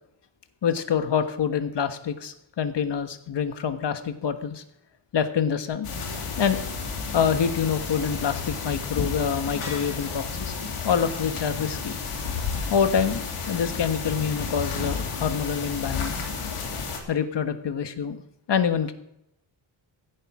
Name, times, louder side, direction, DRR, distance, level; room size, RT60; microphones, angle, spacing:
voice 1, 0.6-4.6 5.1-5.9 6.4-6.6 7.1-10.5 10.8-11.9 12.7-16.2 17.1-18.2 18.5-18.9, left 7 dB, 55° left, 9 dB, 1.4 m, -26 dB
sound 1, 5.8-17.0, left 5 dB, 85° left, 2.9 m, -31 dB
15.5 x 11.5 x 4.9 m, 0.80 s
wide cardioid pair, 120°, 49 cm